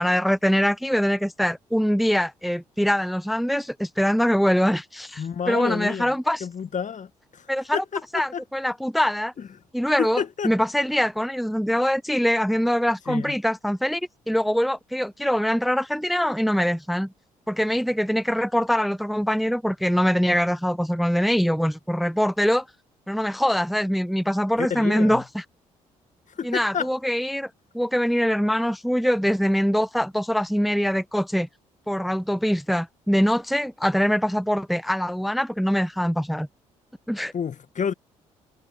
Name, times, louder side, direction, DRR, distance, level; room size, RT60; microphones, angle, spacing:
voice 1, 0.0-6.5 7.5-7.8 8.1-9.3 9.7-14.0 14.3-17.1 17.5-22.6 23.1-25.4 26.4-27.5 27.7-31.5 31.9-36.5 37.1-37.3, equal, ahead, 0.9 m, -23 dB
voice 2, 5.2-6.1 6.4-7.5 7.7-8.0 8.3-8.4 10.0-10.5 13.1-13.3 24.6-25.2 26.4-26.9 37.3-37.9, left 7 dB, 45° left, 1.9 m, -29 dB
hypercardioid pair, 45°, 18 cm